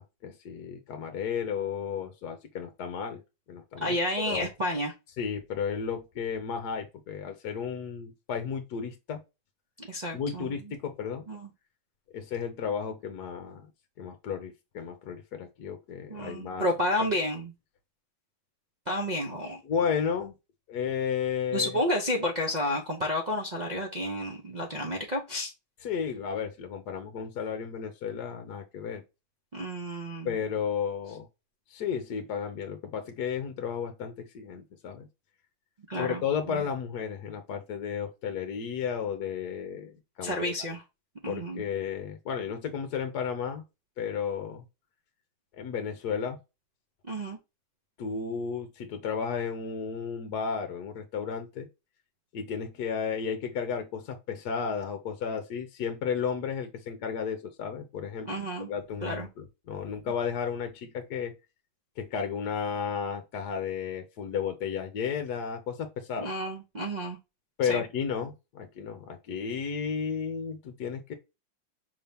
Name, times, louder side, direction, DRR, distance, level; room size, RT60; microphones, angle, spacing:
voice 1, 0.0-3.2 3.5-4.0 4.3-4.5 5.2-9.2 10.1-11.3 12.1-13.7 14.0-16.6 19.6-20.3 20.7-21.7 25.8-29.0 30.2-31.3 31.7-35.1 35.9-40.5 41.3-43.6 44.0-44.6 45.6-46.4 48.0-51.7 52.3-58.3 58.7-61.3 62.0-66.3 67.6-71.1, left 7 dB, 60° left, 1.2 m, -33 dB
voice 2, 3.8-4.9 9.8-10.7 11.3-11.5 16.1-17.5 18.9-19.6 21.5-25.5 29.5-30.4 35.9-36.7 40.2-40.8 41.2-41.6 47.1-47.4 58.2-58.7 59.0-59.3 66.2-67.2 67.6-67.8, equal, 65° right, 0.4 m, -31 dB
5.6 x 2.8 x 3.4 m
omnidirectional pair, 2.1 m